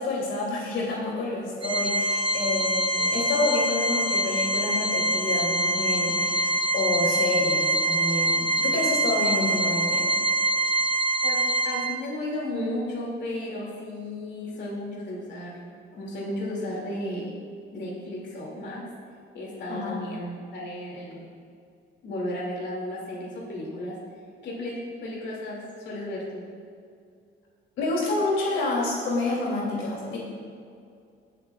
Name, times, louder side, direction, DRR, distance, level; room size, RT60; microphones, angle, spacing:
voice 1, 0.0-10.1 19.7-19.9 27.8-30.2, left 2 dB, 85° left, -4 dB, 2.8 m, -28 dB
Organ, 1.6-12.2, right 2 dB, 25° right, 0.8 m, -25 dB
voice 2, 11.2-15.6 15.9-17.3 17.7-18.9 19.3-21.2 22.0-24.0 24.4-26.5, left 1 dB, 65° left, -4 dB, 2.4 m, -34 dB
22.0 x 7.9 x 2.4 m, 2.3 s
cardioid pair, 90°, 20 cm